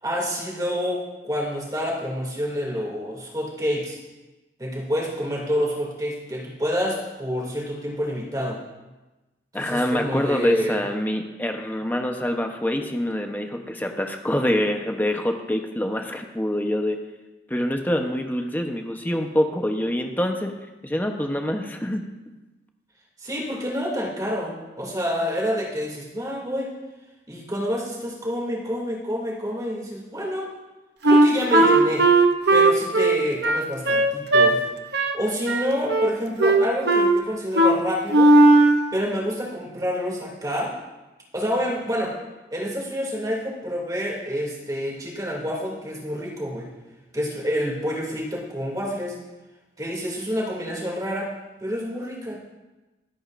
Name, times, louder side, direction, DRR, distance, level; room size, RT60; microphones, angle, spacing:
voice 1, 0.0-4.0 4.6-8.6 9.6-10.8 23.2-26.7 27.3-30.5 31.0-32.1 32.5-34.6 35.1-38.3 38.9-40.7 41.3-42.1 42.5-46.7 47.1-49.1 49.8-51.3 51.6-52.4, equal, 20° right, -2 dB, 2.6 m, -28 dB
voice 2, 9.5-17.0 17.5-20.5 20.8-22.0, left 1 dB, 10° left, 4 dB, 0.9 m, -25 dB
Wind instrument woodwind instrument, 31.0-34.5 34.9-35.2 35.5-36.1 36.4-37.2 37.5-37.8 38.1-38.8, right 2 dB, 70° right, 0.8 m, -16 dB
23.5 x 8.6 x 2.6 m, 1.1 s
head